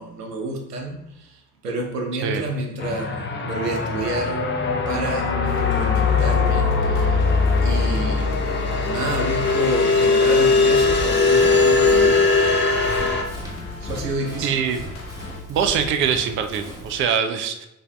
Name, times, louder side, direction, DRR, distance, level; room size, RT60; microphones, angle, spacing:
voice 1, 0.0-3.1 3.4-4.5 4.9-5.3 5.7-7.0 7.6-8.3 8.8-12.2 13.8-14.6, right 2 dB, 90° right, 2 dB, 0.6 m, -29 dB
sound 1, 2.8-13.2, left 4 dB, 25° left, 0.6 m, -20 dB
sound 2, 5.5-15.4, left 4 dB, 70° left, 0.8 m, -38 dB
Run, 10.8-17.0, equal, 5° right, 1.2 m, -36 dB
voice 2, 14.4-14.8 15.5-17.7, right 7 dB, 30° right, 7 dB, 0.3 m, -23 dB
5.2 x 2.6 x 2.2 m, 0.87 s
figure-of-eight pair, 50°, 46 cm